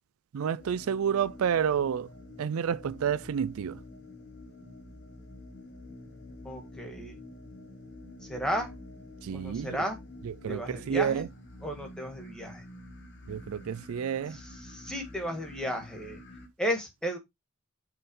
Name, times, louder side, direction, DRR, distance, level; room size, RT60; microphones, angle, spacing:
voice 1, 0.3-2.1 2.4-3.8 9.2-9.8 10.2-11.3 13.3-14.4, right 8 dB, 80° right, 0.4 m, -29 dB
sound 1, 0.6-16.5, left 1 dB, 55° left, 1.5 m, -48 dB
voice 2, 6.4-7.2 8.2-8.7 9.3-10.0 10.5-11.3 11.6-12.6 14.3-16.2 16.6-17.2, equal, 5° left, 1.7 m, -34 dB
5.8 x 4.0 x 5.3 m
head